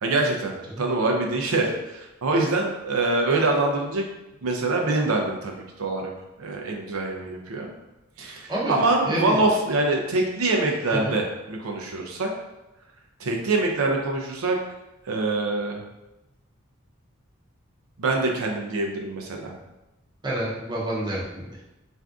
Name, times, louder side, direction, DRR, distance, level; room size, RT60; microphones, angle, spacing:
voice 1, 0.0-0.5 0.8-4.0 4.4-6.1 6.4-7.7 8.2-12.3 13.2-14.6 15.1-15.8 18.0-19.5, right 2 dB, 90° right, 1 dB, 0.5 m, -24 dB
voice 2, 8.5-9.4 10.9-11.2 20.2-21.6, right 1 dB, 20° right, -6 dB, 0.6 m, -29 dB
3.4 x 2.5 x 2.4 m, 0.95 s
head